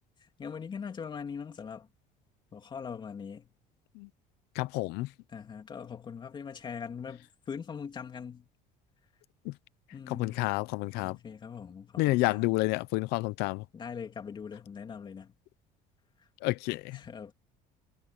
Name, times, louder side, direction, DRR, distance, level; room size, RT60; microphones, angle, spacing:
voice 1, 0.4-1.9 2.5-3.5 5.3-8.5 9.9-10.5 11.0-12.6 13.7-15.3 16.7-17.3, left 6 dB, 30° left, 3.0 m, -41 dB
voice 2, 4.6-5.1 9.5-9.6 10.1-11.2 12.0-13.6 16.4-17.0, left 21 dB, 80° left, 0.8 m, -29 dB
cardioid pair, 145°, 17 cm